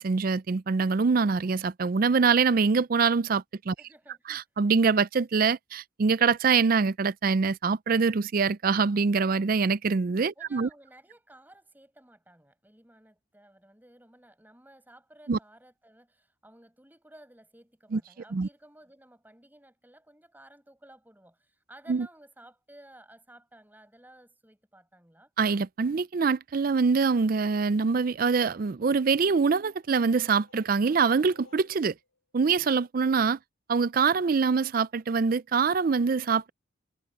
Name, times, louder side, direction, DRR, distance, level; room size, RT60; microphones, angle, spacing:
voice 1, 0.0-3.7 4.3-10.7 15.3-15.4 17.9-18.0 18.3-18.5 21.9-22.1 25.4-31.9 32.3-33.4 33.7-36.5, right 5 dB, 45° right, 0.4 m, -24 dB
voice 2, 3.8-4.4 10.4-25.3, right 1 dB, 10° right, 5.7 m, -55 dB
sound 1, 29.4-32.2, left 3 dB, 85° left, 6.4 m, -59 dB
head